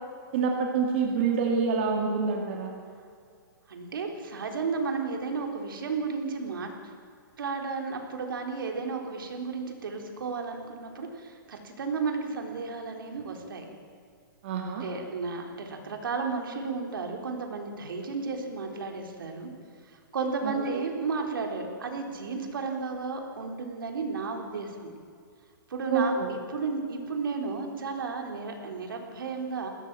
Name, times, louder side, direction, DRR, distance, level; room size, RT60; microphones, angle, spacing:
voice 1, 0.3-2.7 14.4-14.8 20.4-20.5 25.9-26.3, right 5 dB, 30° right, 1 dB, 2.3 m, -26 dB
voice 2, 3.7-6.7 7.4-13.7 14.8-19.5 19.9-24.9 25.7-29.7, right 4 dB, 75° right, 3 dB, 3.9 m, -33 dB
21.0 x 17.0 x 7.6 m, 2.3 s
hypercardioid pair, 175°, 12 cm